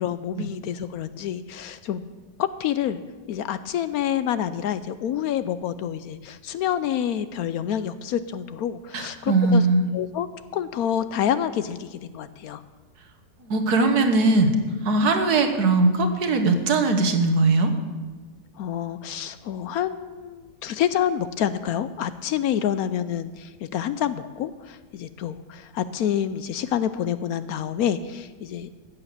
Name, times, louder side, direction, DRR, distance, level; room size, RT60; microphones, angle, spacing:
voice 1, 0.0-2.0 2.4-3.0 3.3-9.6 9.9-10.3 10.5-12.6 18.6-28.7, left 10 dB, 70° left, 13 dB, 1.0 m, -27 dB
voice 2, 8.9-9.8 13.4-14.5 14.8-17.7, right 3 dB, 70° right, 6 dB, 1.7 m, -20 dB
14.0 x 8.6 x 6.7 m, 1.4 s
omnidirectional pair, 1.8 m